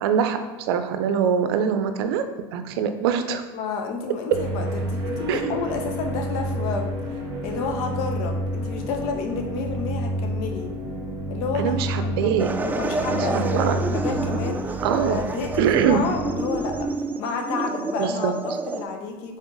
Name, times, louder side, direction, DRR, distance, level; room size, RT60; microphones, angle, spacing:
voice 1, 0.0-2.3 2.5-3.5 5.3-5.6 11.6-12.5 13.1-13.8 14.8-15.2 15.6-16.0 18.0-18.3, right 7 dB, 80° right, 8 dB, 0.5 m, -23 dB
voice 2, 3.5-6.9 7.4-10.7 11.3-12.3 12.6-14.8 15.1-16.9 17.2-19.4, left 5 dB, 65° left, 4 dB, 0.8 m, -30 dB
sound 1, 4.3-16.9, right 1 dB, 40° right, 1.1 m, -30 dB
sound 2, 12.4-18.8, right 3 dB, 15° right, 0.3 m, -29 dB
3.7 x 3.7 x 3.9 m, 1.3 s
supercardioid pair, 105°, 13 cm